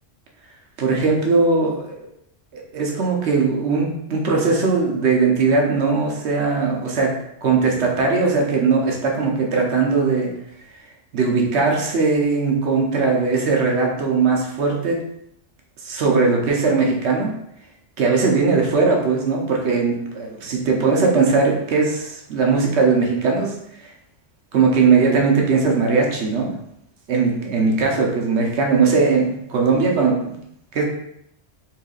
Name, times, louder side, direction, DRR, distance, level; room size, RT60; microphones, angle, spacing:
voice 1, 0.8-2.1 2.5-7.1 7.4-10.3 11.1-15.0 15.8-17.3 18.0-23.9 24.5-26.5 27.1-30.4 30.7-30.9, right 4 dB, 70° right, 0 dB, 1.0 m, -19 dB
4.4 x 2.7 x 2.4 m, 0.76 s
omnidirectional pair, 1.2 m